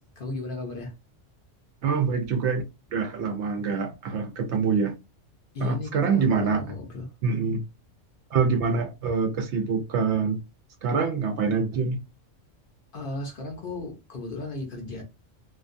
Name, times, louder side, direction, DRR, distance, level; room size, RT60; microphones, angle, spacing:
voice 1, 0.2-0.9 5.5-7.1 12.9-15.0, left 2 dB, 50° left, 0.7 m, -35 dB
voice 2, 1.8-2.6 2.9-4.9 5.6-6.7 7.2-7.7 8.3-10.4 10.8-12.0, right 5 dB, 70° right, 0.8 m, -25 dB
2.4 x 2.2 x 2.5 m
omnidirectional pair, 1.3 m